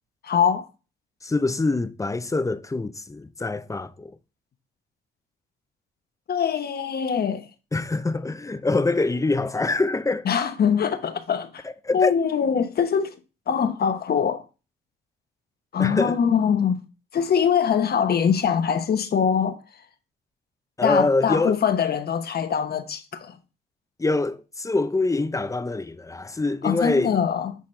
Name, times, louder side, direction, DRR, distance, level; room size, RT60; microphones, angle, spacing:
voice 1, 0.2-0.7 6.3-7.5 10.2-11.6 11.9-13.1 13.5-14.4 15.7-16.8 17.1-19.6 20.8-23.4 26.6-27.6, left 7 dB, 50° left, 1.1 m, -23 dB
voice 2, 1.2-4.1 7.7-10.3 11.8-12.1 15.8-16.2 20.8-21.6 24.0-27.2, left 3 dB, 15° left, 0.6 m, -24 dB
10.0 x 4.2 x 3.3 m
cardioid pair, 90°, 20 cm